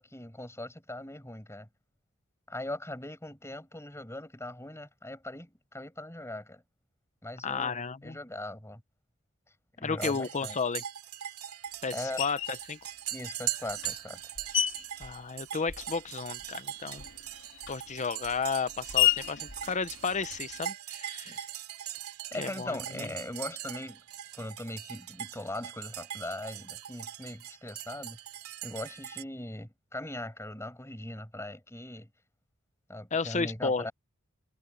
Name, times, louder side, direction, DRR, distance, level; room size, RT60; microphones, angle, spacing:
voice 1, 0.0-1.7 2.5-6.6 7.2-8.8 9.8-10.6 11.9-12.2 13.1-14.2 21.2-21.5 22.3-24.0 24.3-28.2 28.6-32.1 32.9-33.9, left 1 dB, 10° left, 7.9 m, -40 dB
voice 2, 7.4-8.2 9.8-10.8 11.8-12.8 15.0-17.0 17.7-21.4 22.4-23.1 33.1-33.9, left 5 dB, 35° left, 0.8 m, -33 dB
sound 1, 10.0-29.2, right 12 dB, 90° right, 2.9 m, -41 dB
Screech, 12.2-12.6 13.4-16.1 16.4-20.7, left 12 dB, 60° left, 2.7 m, -33 dB
head